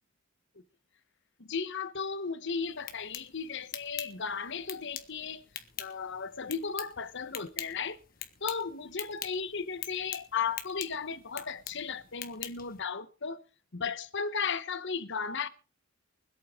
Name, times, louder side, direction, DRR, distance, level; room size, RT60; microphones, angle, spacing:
voice 1, 1.5-5.4 5.8-8.0 8.4-13.4 13.7-15.5, left 5 dB, 60° left, 12 dB, 1.1 m, -35 dB
sound 1, 2.6-12.8, left 10 dB, 45° left, 1.6 m, -44 dB
24.5 x 8.6 x 3.7 m, 0.34 s
head